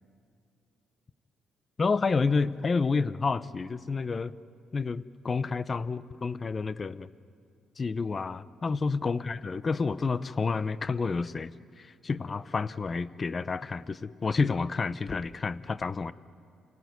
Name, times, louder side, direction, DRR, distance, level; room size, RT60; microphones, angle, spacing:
voice 1, 1.8-4.3 4.7-7.1 7.8-11.5 11.8-16.1, left 4 dB, 35° left, 16 dB, 0.7 m, -29 dB
28.5 x 18.0 x 9.5 m, 2.6 s
cardioid pair, 90°, 0 cm